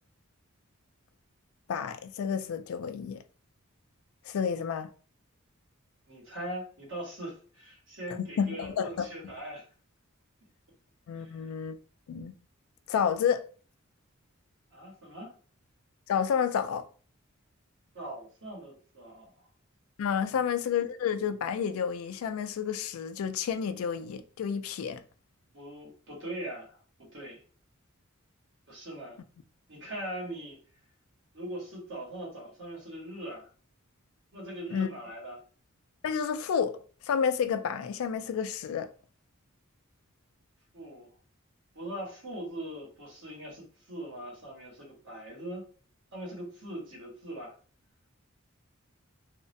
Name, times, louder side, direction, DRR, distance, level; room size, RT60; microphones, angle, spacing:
voice 1, 1.7-3.2 4.3-4.9 8.2-9.3 11.1-11.8 12.1-12.3 12.9-13.4 16.1-16.9 20.0-25.0 34.7-34.9 36.0-36.8 37.0-38.9, left 7 dB, 70° left, 0.3 m, -30 dB
voice 2, 6.1-9.6 11.1-11.5 14.7-15.3 17.9-19.5 20.3-20.8 25.5-27.4 28.7-29.2 29.7-30.6 31.3-33.5 34.3-35.4 40.7-41.1 41.7-45.7 46.1-47.6, right 1 dB, 60° right, 1.1 m, -41 dB
2.4 x 2.1 x 2.6 m
head